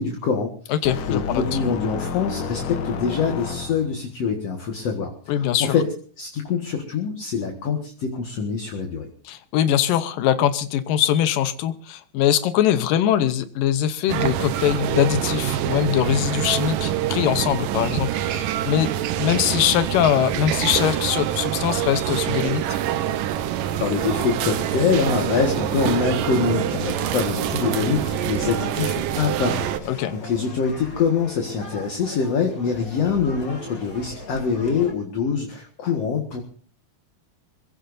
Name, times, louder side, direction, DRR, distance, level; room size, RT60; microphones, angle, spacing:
voice 1, 0.0-0.8 1.1-5.9 6.2-9.1 23.8-36.4, left 5 dB, 55° left, 3 dB, 2.6 m, -24 dB
voice 2, 0.7-1.4 5.3-5.8 9.3-18.9 19.2-22.8 29.9-30.1, left 11 dB, 90° left, 11 dB, 2.6 m, -22 dB
sound 1, 0.8-4.1, left 5 dB, 75° left, 2.8 m, -31 dB
sound 2, 14.1-29.8, right 11 dB, 80° right, 2.6 m, -25 dB
sound 3, 23.6-34.9, left 2 dB, 30° left, 2.6 m, -39 dB
25.5 x 17.0 x 2.7 m, 0.43 s
omnidirectional pair, 3.8 m